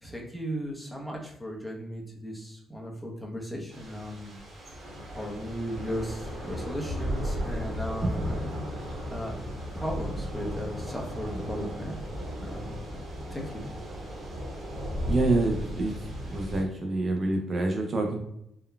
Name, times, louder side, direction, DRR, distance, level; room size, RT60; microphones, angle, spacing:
voice 1, 0.0-4.4 5.1-8.4 8.8-9.4 9.7-12.0 12.4-12.8 13.3-13.6, equal, 5° left, -1 dB, 0.7 m, -36 dB
Thunder / Rain, 3.7-16.6, equal, 60° right, 1.0 m, -35 dB
voice 2, 8.2-8.6 15.1-15.9 16.3-18.2, right 2 dB, 40° right, 2 dB, 0.4 m, -27 dB
3.7 x 2.1 x 2.2 m, 0.77 s
cardioid pair, 90°, 0 cm